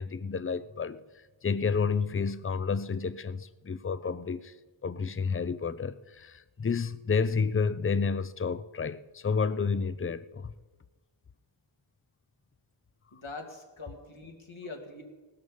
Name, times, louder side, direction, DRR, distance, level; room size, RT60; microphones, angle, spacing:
voice 1, 0.0-4.5 4.8-10.5, left 5 dB, 25° left, 0.6 m, -30 dB
voice 2, 13.1-15.0, left 3 dB, 75° left, 2.7 m, -43 dB
18.0 x 12.5 x 5.5 m
wide cardioid pair, 60°, 48 cm